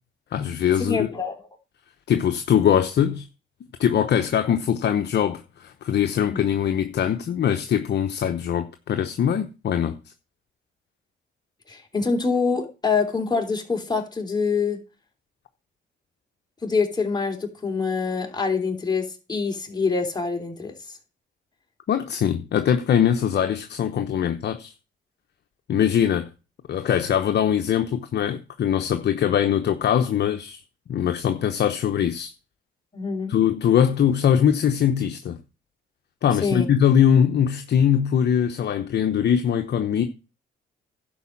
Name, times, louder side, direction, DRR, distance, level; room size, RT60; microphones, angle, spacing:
voice 1, 0.3-1.1 2.1-3.3 3.8-10.0 21.9-24.7 25.7-26.3 26.7-30.6 30.9-32.3 33.3-35.4 36.2-40.0, left 9 dB, 60° left, 0.9 m, -22 dB
voice 2, 0.9-1.4 6.3-6.4 11.7-14.8 16.6-20.7 32.9-33.3 36.4-36.7, left 4 dB, 20° left, 3.1 m, -25 dB
11.5 x 4.8 x 7.3 m
cardioid pair, 90°, 20 cm